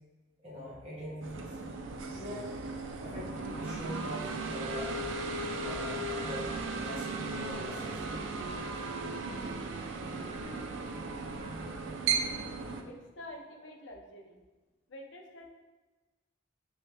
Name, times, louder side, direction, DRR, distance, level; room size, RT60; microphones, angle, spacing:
voice 1, 0.4-1.6 2.1-2.5 3.0-4.9 5.6-8.2, equal, 30° right, -8 dB, 1.0 m, -43 dB
sound 1, 1.2-12.8, right 3 dB, 90° right, 0.4 m, -36 dB
voice 2, 12.6-14.4 14.9-15.5, left 1 dB, 75° left, 1 dB, 0.6 m, -48 dB
3.4 x 3.0 x 3.2 m, 1.2 s
head